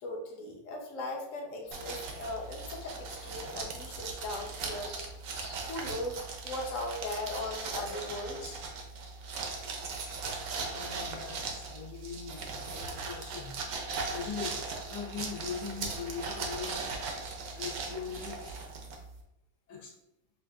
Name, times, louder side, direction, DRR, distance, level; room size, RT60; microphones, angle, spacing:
voice 1, 0.0-4.9 5.7-8.7, left 2 dB, 60° left, 0 dB, 1.0 m, -38 dB
sound 1, 1.6-8.6, left 1 dB, 40° left, 0.5 m, -55 dB
sound 2, 1.7-19.2, right 4 dB, 70° right, 1.1 m, -39 dB
voice 2, 10.6-13.6 14.1-14.6 14.9-16.7 17.0-17.1 17.5-18.6 19.7-19.9, left 6 dB, 90° left, -1 dB, 1.5 m, -41 dB
5.4 x 2.3 x 2.3 m, 0.87 s
omnidirectional pair, 1.7 m